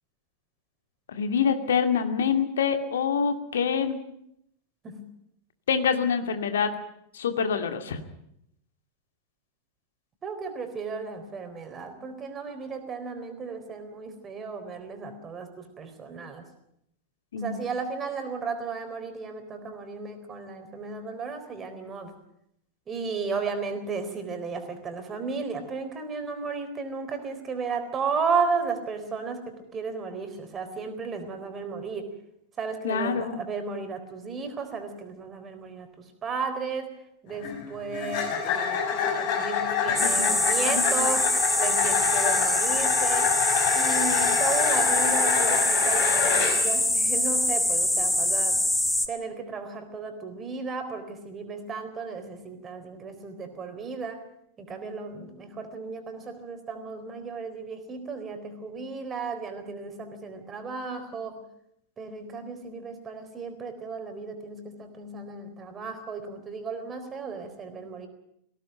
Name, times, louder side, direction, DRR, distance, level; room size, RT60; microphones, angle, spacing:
voice 1, 1.1-4.0 5.7-6.7 7.1-8.0 17.3-17.6 32.8-33.4 39.9-40.3 40.7-41.1, left 6 dB, 65° left, 7 dB, 2.3 m, -26 dB
voice 2, 10.2-16.5 17.4-22.1 22.9-32.1 32.6-36.9 37.2-43.3 43.7-48.6 49.1-54.2 54.6-61.4 62.0-68.1, right 5 dB, 25° right, 7 dB, 4.0 m, -34 dB
sound 1, 37.3-46.8, left 7 dB, 45° left, 5.1 m, -27 dB
sound 2, 40.0-49.1, left 1 dB, 5° left, 1.7 m, -24 dB
19.5 x 17.0 x 9.1 m, 0.76 s
figure-of-eight pair, 90°, 0 cm